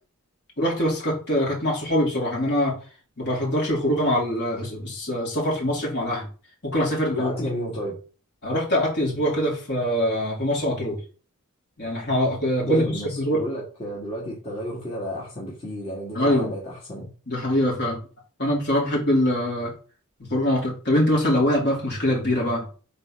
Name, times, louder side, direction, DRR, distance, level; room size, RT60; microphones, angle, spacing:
voice 1, 0.6-2.8 3.2-6.3 6.6-7.5 8.4-11.0 11.8-13.4 16.1-16.5 17.3-18.0 18.4-19.7 20.3-22.6, equal, 55° left, 3.0 m, -23 dB
voice 2, 7.2-8.0 12.6-17.1, equal, 30° left, 1.8 m, -32 dB
4.4 x 4.2 x 5.7 m
head